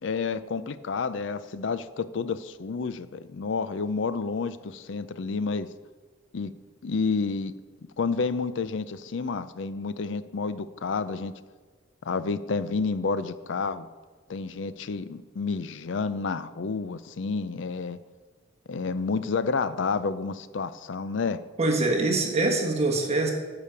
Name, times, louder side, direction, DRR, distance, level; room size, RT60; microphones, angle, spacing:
voice 1, 0.0-5.7 6.3-6.5 6.8-7.5 8.0-11.3 12.0-13.9 14.3-18.0 18.7-21.4, left 4 dB, 70° left, 14 dB, 0.5 m, -30 dB
voice 2, 21.6-23.3, right 2 dB, 35° right, 1 dB, 1.3 m, -24 dB
11.0 x 5.0 x 6.8 m, 1.4 s
head